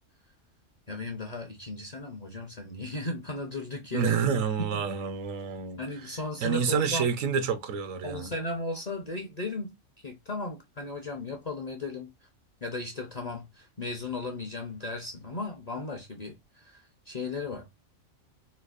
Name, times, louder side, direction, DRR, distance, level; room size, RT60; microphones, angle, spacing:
voice 1, 0.9-4.2 4.7-4.8 5.8-7.0 8.0-9.7 10.0-12.1 12.6-17.7, left 3 dB, 40° left, 0.6 m, -36 dB
voice 2, 3.9-5.8 6.4-8.3, right 6 dB, 75° right, 1.1 m, -28 dB
4.3 x 2.3 x 2.4 m
omnidirectional pair, 1.4 m